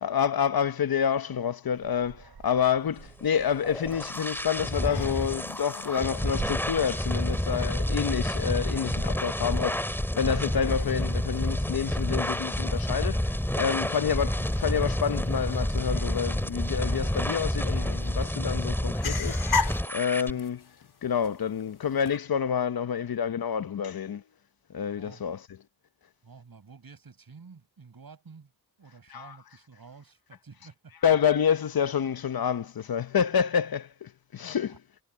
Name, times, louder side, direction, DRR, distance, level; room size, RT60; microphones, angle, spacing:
voice 1, 0.0-20.6 21.0-24.2 24.7-25.6 29.1-29.4 30.9-34.8, left 7 dB, 65° left, 0.9 m, -28 dB
Dog, 1.7-17.4, right 6 dB, 85° right, 3.7 m, -50 dB
sound 1, 3.3-20.3, left 1 dB, 5° left, 2.2 m, -29 dB
sound 2, 4.0-22.2, left 4 dB, 85° left, 4.1 m, -40 dB
voice 2, 26.2-28.5 28.8-30.9 34.7-34.8, right 5 dB, 65° right, 7.5 m, -50 dB
cardioid pair, 70°, 38 cm